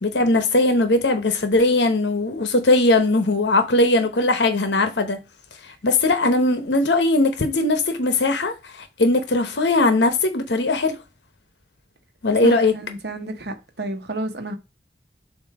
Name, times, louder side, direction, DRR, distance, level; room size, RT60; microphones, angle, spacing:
voice 1, 0.0-5.2 5.6-11.0 12.2-12.7, left 2 dB, 70° left, 0.9 m, -19 dB
voice 2, 12.4-14.6, right 1 dB, 65° right, 1.0 m, -30 dB
7.5 x 2.7 x 4.8 m
head